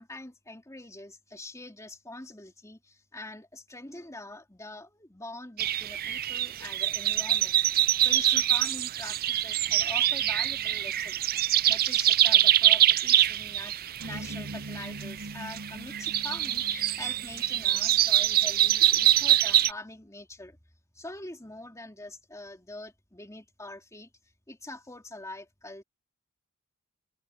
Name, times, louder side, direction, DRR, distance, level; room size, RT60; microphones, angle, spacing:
voice 1, 0.0-11.3 11.7-13.7 14.0-20.6 20.9-24.1 24.5-25.8, left 2 dB, 15° left, 2.9 m, -44 dB
sound 1, 5.6-19.7, right 12 dB, 40° right, 0.4 m, -24 dB
sound 2, 14.0-18.3, right 1 dB, 70° right, 2.4 m, -42 dB
head